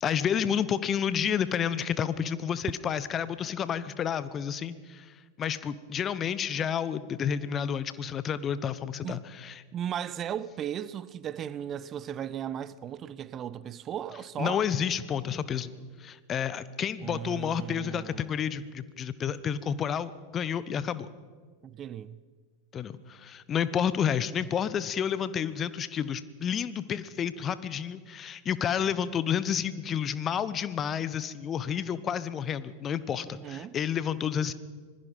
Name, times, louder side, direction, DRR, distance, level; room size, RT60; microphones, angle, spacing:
voice 1, 0.0-9.6 14.4-15.7 16.0-21.1 22.7-34.5, left 8 dB, 25° left, 0.9 m, -30 dB
voice 2, 9.7-14.7 17.0-18.3 21.6-22.2 33.4-33.8, right 10 dB, 30° right, 0.6 m, -36 dB
25.5 x 20.0 x 5.6 m
figure-of-eight pair, 90°, 0 cm